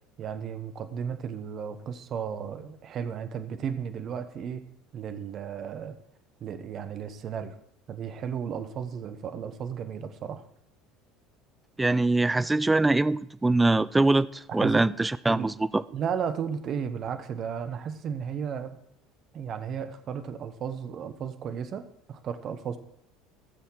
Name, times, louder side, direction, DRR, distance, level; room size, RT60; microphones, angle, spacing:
voice 1, 0.2-4.6 4.9-6.0 6.4-7.6 7.9-10.4 14.6-14.8 15.3-15.5 15.9-18.7 19.3-22.8, right 7 dB, 45° right, 1.1 m, -34 dB
voice 2, 11.8-14.3 14.5-15.8, right 2 dB, 10° right, 0.4 m, -23 dB
16.5 x 7.0 x 4.6 m
figure-of-eight pair, 65°, 0 cm